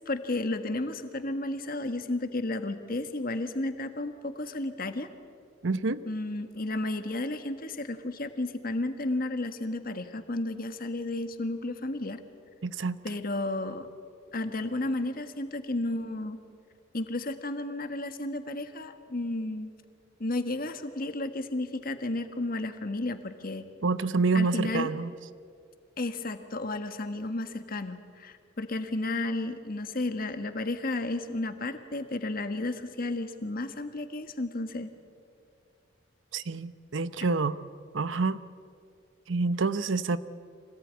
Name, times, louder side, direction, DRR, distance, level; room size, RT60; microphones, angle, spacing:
voice 1, 0.1-5.1 6.1-12.2 13.0-13.9 14.3-16.4 16.9-19.7 20.2-23.7 24.3-24.9 26.0-34.9, left 2 dB, 50° left, 8 dB, 1.6 m, -32 dB
voice 2, 5.6-6.0 12.6-13.0 23.8-25.1 36.3-37.6 37.9-38.4 39.3-40.2, right 4 dB, 85° right, 14 dB, 0.8 m, -27 dB
25.5 x 18.0 x 9.5 m, 2.3 s
head